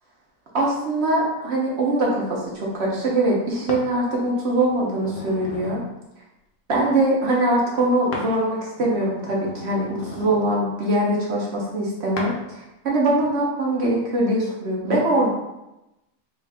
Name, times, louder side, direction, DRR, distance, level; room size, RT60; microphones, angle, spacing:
voice 1, 0.5-5.8 6.7-15.3, right 1 dB, 55° right, -3 dB, 0.8 m, -22 dB
sound 1, 3.7-3.9 4.5-5.9 8.1-8.3 8.8-10.6 12.2-12.4 13.1-13.3, left 3 dB, 60° left, 0.7 m, -36 dB
3.5 x 2.3 x 3.3 m, 0.93 s
omnidirectional pair, 1.5 m